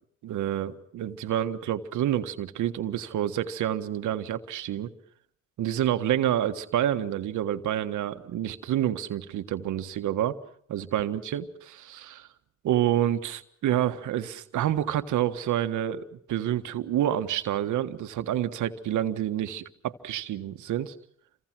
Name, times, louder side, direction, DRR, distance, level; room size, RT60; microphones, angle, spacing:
voice 1, 0.2-4.9 5.6-10.4 10.7-12.3 12.6-20.9, right 11 dB, 80° right, 1.6 m, -28 dB
29.0 x 25.5 x 6.2 m
cardioid pair, 90°, 30 cm